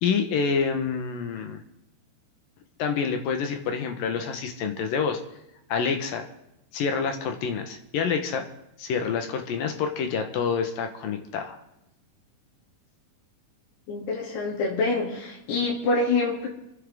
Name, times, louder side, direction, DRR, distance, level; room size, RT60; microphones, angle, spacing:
voice 1, 0.0-1.6 2.8-5.2 5.7-6.3 6.7-8.4 8.8-11.6, left 6 dB, 70° left, 5 dB, 2.8 m, -27 dB
voice 2, 13.9-16.5, left 3 dB, 85° left, -4 dB, 5.0 m, -26 dB
28.0 x 9.8 x 3.7 m, 0.87 s
omnidirectional pair, 4.6 m